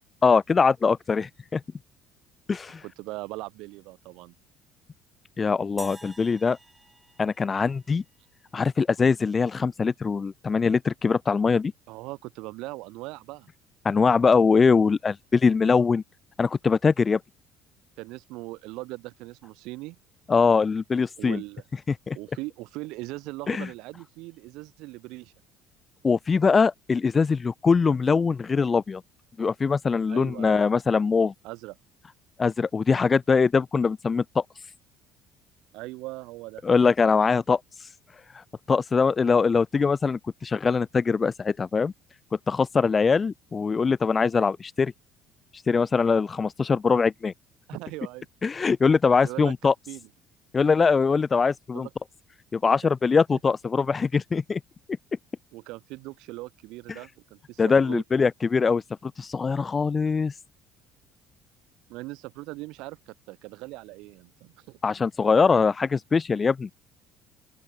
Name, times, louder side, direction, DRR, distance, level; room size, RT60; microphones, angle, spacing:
voice 1, 0.2-1.6 2.5-2.8 5.4-6.6 7.2-8.0 8.5-11.7 13.8-16.0 16.4-17.2 20.3-21.4 21.9-22.2 23.5-23.7 26.0-29.0 29.4-31.3 32.4-34.4 36.6-37.6 38.3-41.9 42.5-44.9 45.7-47.3 48.4-49.7 50.5-51.9 52.5-54.6 57.6-60.3 64.8-66.7, left 5 dB, 30° left, 0.4 m, -22 dB
voice 2, 2.8-4.4 11.9-13.5 18.0-20.0 21.2-21.6 22.1-25.3 30.1-30.6 31.4-31.7 35.7-36.6 47.7-48.3 49.2-49.5 49.9-50.1 51.7-51.9 53.3-53.4 55.5-58.0 61.9-64.8, right 21 dB, 70° right, 7.6 m, -39 dB
sound 1, 5.8-8.2, right 2 dB, 15° right, 6.8 m, -48 dB
open air
hypercardioid pair, 60°, 0 cm